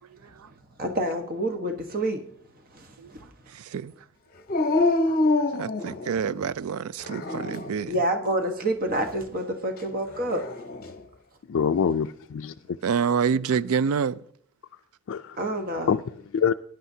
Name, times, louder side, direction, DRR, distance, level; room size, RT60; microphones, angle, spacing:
voice 1, 0.8-2.2 2.7-3.2 7.9-10.4 15.4-15.9, right 1 dB, 40° right, 1.2 m, -28 dB
voice 2, 3.5-3.9 5.1-5.2 5.5-8.0 12.8-14.2, right 6 dB, 70° right, 0.4 m, -27 dB
Dog, 4.5-6.4 7.0-7.8 10.1-11.0, left 2 dB, 40° left, 0.8 m, -26 dB
voice 3, 11.5-12.8 15.1-15.4 15.9-16.5, left 6 dB, 60° left, 0.4 m, -25 dB
19.5 x 10.5 x 2.7 m
head